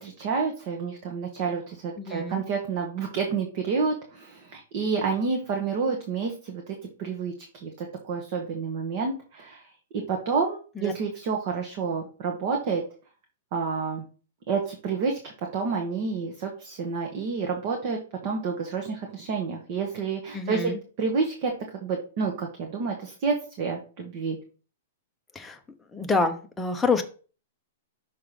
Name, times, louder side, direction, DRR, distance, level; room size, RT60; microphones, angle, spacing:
voice 1, 0.0-9.6 10.1-12.8 13.5-14.0 14.5-20.7 21.0-21.5 21.8-24.4, right 5 dB, 40° right, 2 dB, 1.1 m, -29 dB
voice 2, 2.0-2.4 10.8-10.9 20.3-20.8 25.3-25.6 25.9-27.0, left 3 dB, 5° left, 4 dB, 0.6 m, -27 dB
6.0 x 3.7 x 4.9 m, 0.38 s
hypercardioid pair, 160°, 0 cm